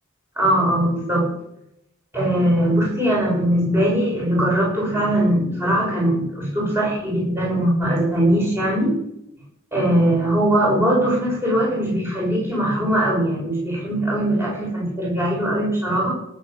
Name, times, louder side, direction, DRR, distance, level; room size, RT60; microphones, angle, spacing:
voice 1, 0.4-1.3 2.1-8.9 9.7-16.1, right 1 dB, 10° right, -3 dB, 6.6 m, -20 dB
18.5 x 8.9 x 6.8 m, 0.79 s
head